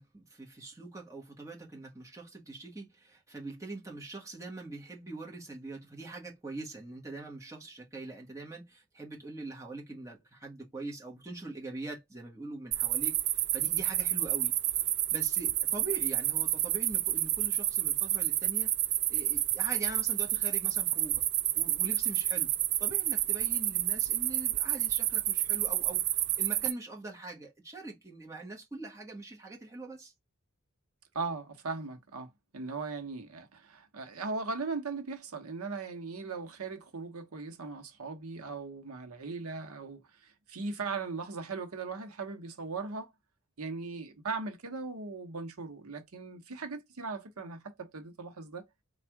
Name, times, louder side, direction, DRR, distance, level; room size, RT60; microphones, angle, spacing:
voice 1, 0.0-18.7 19.1-21.2 21.5-22.5 22.8-30.1, right 2 dB, 15° right, 1.3 m, -43 dB
sound 1, 12.7-26.7, right 14 dB, 50° right, 0.4 m, -29 dB
voice 2, 31.1-43.1 43.6-48.7, right 4 dB, 90° right, 0.9 m, -39 dB
3.5 x 2.4 x 4.5 m
head